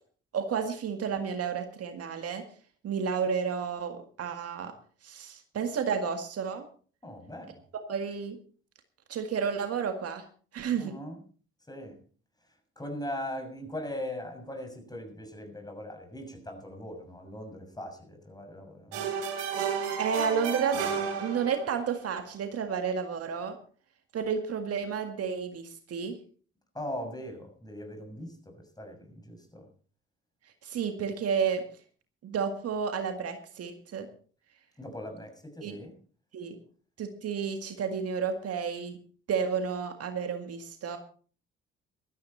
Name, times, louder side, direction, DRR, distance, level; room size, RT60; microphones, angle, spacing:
voice 1, 0.3-2.5 2.8-4.7 5.0-6.7 7.9-8.4 9.1-10.3 10.5-11.0 19.8-20.8 21.2-23.6 24.1-26.2 30.6-31.6 32.2-34.1 35.6-35.8 36.3-36.6 37.0-39.0 39.3-41.0, right 6 dB, 55° right, 7 dB, 1.9 m, -31 dB
voice 2, 7.0-7.6 10.8-11.2 11.7-12.0 12.8-19.1 26.7-29.7 34.8-35.9, left 1 dB, 15° left, 4 dB, 6.6 m, -40 dB
sound 1, 18.9-21.9, right 7 dB, 80° right, 3.1 m, -32 dB
16.5 x 13.5 x 4.3 m, 0.42 s
hypercardioid pair, 50°, 29 cm